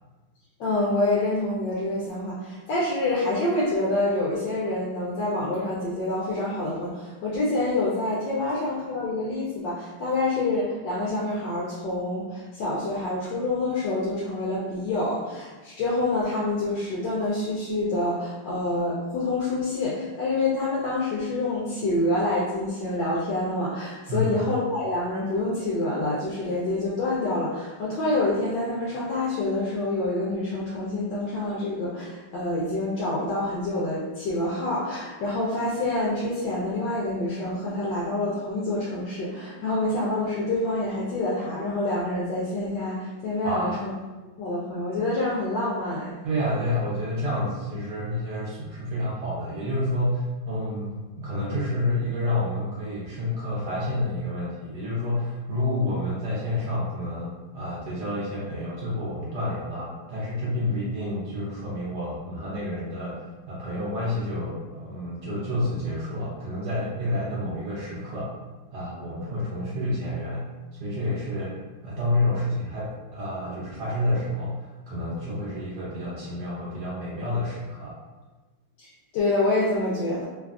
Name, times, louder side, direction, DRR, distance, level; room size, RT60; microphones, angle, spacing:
voice 1, 0.6-43.9 44.4-46.2 78.8-78.9 79.1-80.2, left 2 dB, 75° left, -6 dB, 1.1 m, -27 dB
voice 2, 43.4-43.8 46.2-63.2 63.5-68.3 68.7-70.5 70.8-71.6 71.8-78.0, left 1 dB, 70° right, -7 dB, 1.0 m, -29 dB
3.3 x 2.3 x 2.4 m, 1.2 s
omnidirectional pair, 2.3 m